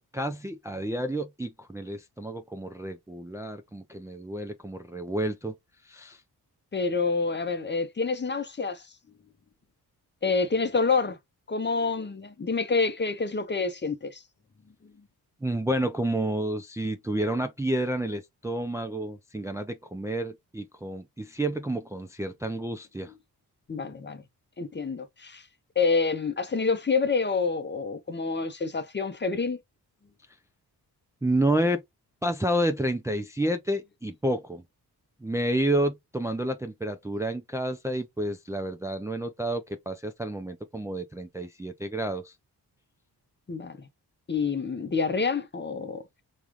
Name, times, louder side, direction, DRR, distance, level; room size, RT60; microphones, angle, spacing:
voice 1, 0.0-5.5 5.9-6.2 15.4-23.1 31.2-31.8 32.2-34.6 35.2-42.3, right 1 dB, 10° right, 0.4 m, -30 dB
voice 2, 6.7-8.9 10.2-11.2 11.5-14.2 23.0-23.1 23.7-24.2 24.6-25.5 25.8-29.6 43.5-43.9 44.3-46.0, left 4 dB, 30° left, 0.7 m, -27 dB
3.5 x 2.4 x 2.9 m
cardioid pair, 55°, 39 cm